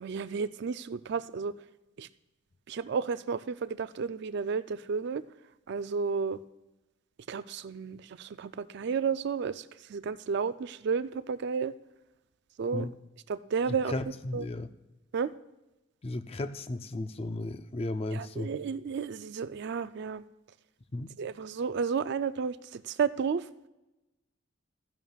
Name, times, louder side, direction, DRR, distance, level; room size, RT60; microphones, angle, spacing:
voice 1, 0.0-1.6 2.0-2.1 2.7-5.2 5.7-6.4 7.3-9.6 9.9-11.7 12.6-12.9 13.3-13.9 14.3-14.5 15.1-15.3 18.1-20.2 21.2-23.5, right 6 dB, 55° right, 14 dB, 0.4 m, -32 dB
voice 2, 13.9-14.7 16.0-18.5 20.9-21.1, left 2 dB, 30° left, 10 dB, 0.4 m, -34 dB
14.5 x 10.5 x 2.3 m, 1.0 s
head